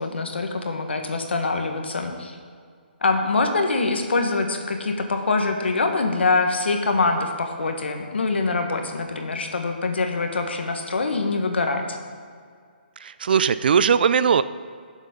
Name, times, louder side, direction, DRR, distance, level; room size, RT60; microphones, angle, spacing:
voice 1, 0.0-2.4 3.0-12.0, left 3 dB, 85° left, 4 dB, 1.5 m, -24 dB
voice 2, 13.0-14.4, right 7 dB, 60° right, 14 dB, 0.4 m, -19 dB
14.5 x 7.3 x 3.9 m, 2.1 s
hypercardioid pair, 155°, 6 cm